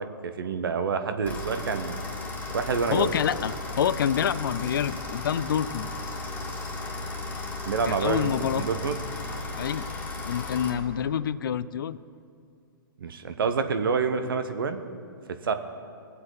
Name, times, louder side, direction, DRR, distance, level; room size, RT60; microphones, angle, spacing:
voice 1, 0.0-2.0 2.5-3.1 7.7-9.0 13.0-14.8 15.4-15.5, right 5 dB, 80° right, 9 dB, 0.9 m, -27 dB
sound 1, 1.2-10.7, left 2 dB, 15° left, 1.7 m, -35 dB
voice 2, 2.9-5.9 7.9-8.6 9.6-9.9 10.3-12.0, left 9 dB, 70° left, 17 dB, 0.4 m, -27 dB
19.0 x 7.8 x 3.9 m, 2.4 s
hypercardioid pair, 130°, 12 cm